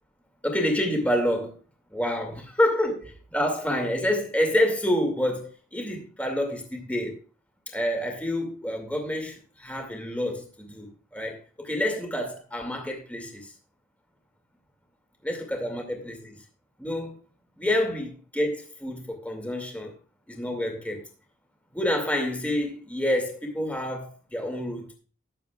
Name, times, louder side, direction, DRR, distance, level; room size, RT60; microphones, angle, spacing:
voice 1, 0.4-1.6 1.9-7.2 7.7-13.5 15.2-16.4 16.8-17.2 17.6-18.1 18.3-19.9 20.3-21.0 21.7-24.9, left 1 dB, 5° left, 2.3 m, -28 dB
20.0 x 7.6 x 2.4 m
head